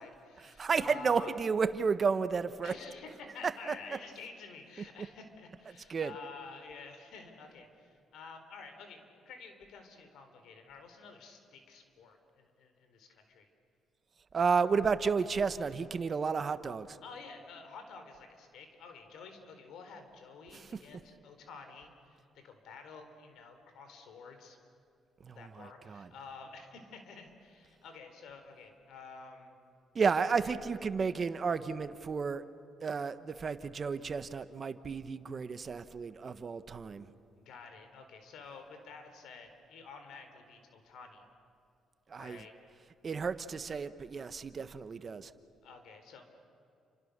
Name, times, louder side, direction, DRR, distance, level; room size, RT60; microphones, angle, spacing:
voice 1, 0.0-1.3 2.6-13.5 17.0-24.6 25.3-29.5 30.3-30.6 37.3-41.3 42.2-42.5 45.6-46.2, left 4 dB, 80° left, 6 dB, 4.1 m, -50 dB
voice 2, 0.6-2.7 5.9-6.1 14.3-17.0 20.5-20.7 25.3-26.1 29.9-32.4 32.8-37.1 42.1-42.4 43.0-45.3, right 5 dB, 40° right, 12 dB, 1.2 m, -32 dB
29.5 x 26.0 x 6.8 m, 2.6 s
cardioid pair, 90°, 0 cm